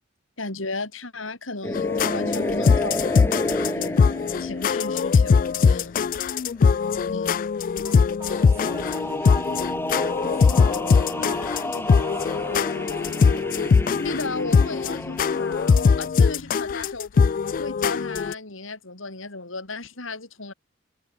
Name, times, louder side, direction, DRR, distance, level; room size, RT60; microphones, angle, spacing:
voice 1, 0.4-4.0 4.4-6.4 7.1-7.3 14.0-20.5, left 3 dB, 85° left, 4.6 m, -35 dB
sound 1, 1.6-6.2 8.3-16.1, left 1 dB, 10° left, 2.3 m, -31 dB
sound 2, 1.7-18.3, left 5 dB, 45° left, 0.3 m, -21 dB
voice 2, 6.8-7.2 7.8-9.5 10.0-13.5, right 2 dB, 15° right, 6.7 m, -47 dB
sound 3, 8.2-15.2, right 2 dB, 40° right, 2.9 m, -48 dB
head